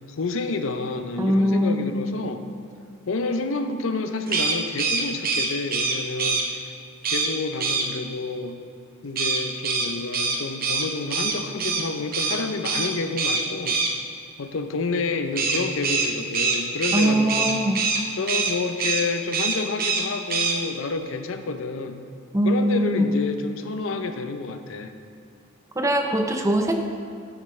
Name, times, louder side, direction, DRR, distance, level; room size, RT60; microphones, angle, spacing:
voice 1, 0.0-2.4 3.1-6.5 7.1-8.6 9.0-13.8 14.4-17.6 18.1-22.0 22.4-24.9, left 3 dB, 65° left, 7 dB, 0.6 m, -29 dB
voice 2, 1.2-1.9 16.9-17.8 22.3-23.1 25.8-26.7, equal, 15° right, 4 dB, 0.5 m, -22 dB
sound 1, 4.3-6.4 7.0-7.3 7.6-7.9 9.2-11.8 12.1-12.4 12.6-12.9 13.2-13.9 15.4-18.0 18.3-18.5 18.8-19.0 19.3-20.0 20.3-20.5, right 4 dB, 45° right, 0.9 m, -24 dB
9.7 x 9.1 x 3.2 m, 2.4 s
head